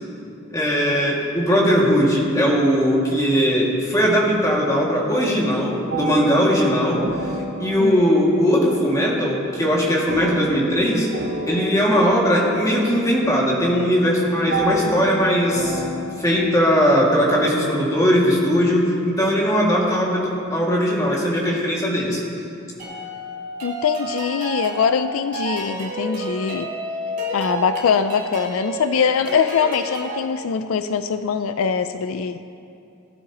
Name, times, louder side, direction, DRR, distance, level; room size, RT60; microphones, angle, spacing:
voice 1, 0.5-7.3 7.6-11.1 11.5-15.8 16.2-22.2, equal, 15° left, -4 dB, 2.1 m, -19 dB
sound 1, 5.9-16.0, right 2 dB, 85° right, 3.2 m, -30 dB
sound 2, 22.8-30.2, right 1 dB, 40° right, 3.1 m, -30 dB
voice 2, 23.6-26.7 27.3-32.4, left 6 dB, 75° left, 10 dB, 0.4 m, -22 dB
19.5 x 10.5 x 3.0 m, 2.7 s
head